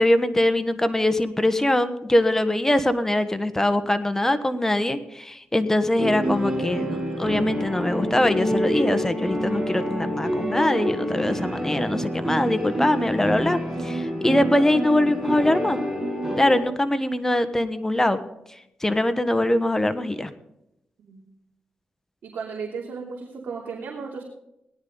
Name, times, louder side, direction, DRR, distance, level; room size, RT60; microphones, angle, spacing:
voice 1, 0.0-15.8 16.4-18.2 18.8-20.3, left 1 dB, 15° left, 10 dB, 1.3 m, -22 dB
sound 1, 6.0-16.6, equal, 10° right, 6.7 m, -27 dB
voice 2, 21.0-21.3 22.2-24.2, right 5 dB, 75° right, -2 dB, 3.1 m, -35 dB
18.0 x 11.5 x 4.0 m, 0.83 s
cardioid pair, 75°, 3 cm